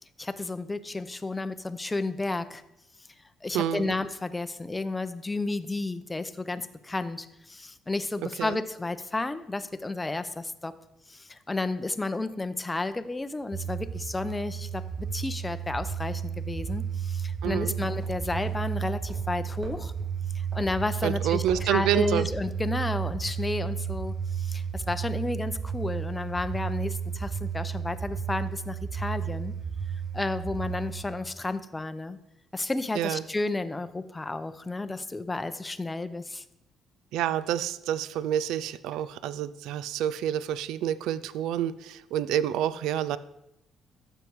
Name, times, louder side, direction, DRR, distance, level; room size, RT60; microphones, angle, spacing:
voice 1, 0.2-2.6 3.4-10.8 11.1-19.9 20.3-29.5 30.1-32.2 32.5-36.4, left 2 dB, 15° left, 11 dB, 0.6 m, -32 dB
voice 2, 3.5-3.9 8.4-8.6 17.4-17.8 21.0-22.2 32.9-33.2 37.1-43.2, right 11 dB, 90° right, 16 dB, 0.4 m, -28 dB
sound 1, 13.5-31.0, right 7 dB, 30° right, 0.8 m, -33 dB
sound 2, 17.0-22.2, right 2 dB, 50° right, 4.1 m, -48 dB
12.0 x 7.9 x 4.7 m, 0.86 s
cardioid pair, 125°, 0 cm